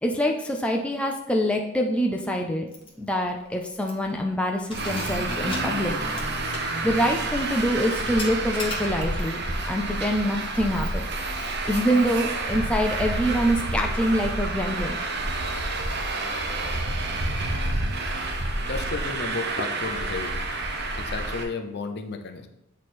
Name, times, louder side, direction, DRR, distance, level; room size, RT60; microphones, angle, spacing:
voice 1, 0.0-2.7 3.0-6.0 6.8-9.4 9.7-11.1 11.7-15.0, equal, 5° left, 1 dB, 0.4 m, -25 dB
Keys jangling, 2.7-2.9 3.2-3.3 3.8-4.2 4.6-9.3, left 2 dB, 25° left, 0.9 m, -38 dB
Traffic noise roadway noise, 4.7-21.4, right 2 dB, 50° right, 0.7 m, -29 dB
voice 2, 18.6-20.4 21.0-22.5, left 4 dB, 50° left, 6 dB, 0.6 m, -33 dB
8.3 x 3.2 x 4.3 m, 0.87 s
head